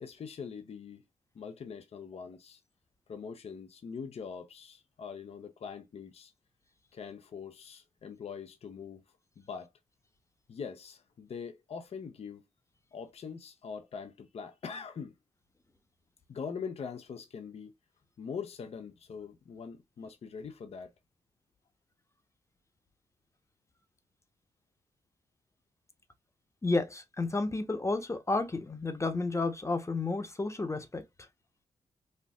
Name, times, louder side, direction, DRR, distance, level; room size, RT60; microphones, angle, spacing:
voice 1, 0.0-1.0 1.3-2.6 3.1-6.3 6.9-9.0 9.4-9.7 10.5-12.5 12.9-15.1 16.3-17.7 18.2-20.9, left 6 dB, 60° left, 0.6 m, -42 dB
voice 2, 26.6-31.0, left 3 dB, 25° left, 0.8 m, -31 dB
4.3 x 2.5 x 2.3 m
cardioid pair, 55°, 12 cm